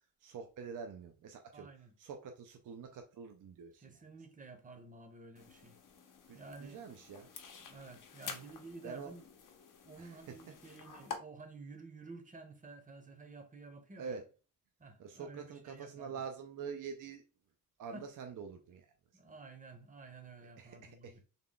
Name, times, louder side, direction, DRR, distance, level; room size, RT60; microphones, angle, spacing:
voice 1, 0.2-1.7 2.0-3.8 6.3-7.3 8.8-9.1 10.0-10.3 14.0-14.2 15.0-17.2 17.8-18.9 20.6-21.2, right 6 dB, 70° right, 0.5 m, -46 dB
voice 2, 1.5-1.9 3.8-5.8 6.3-6.8 7.7-9.3 9.8-14.2 14.8-16.2 17.9-18.1 19.1-21.2, right 3 dB, 25° right, 0.8 m, -52 dB
sound 1, 5.4-11.2, left 6 dB, 70° left, 0.8 m, -49 dB
3.6 x 2.2 x 3.6 m
wide cardioid pair, 125°, 33 cm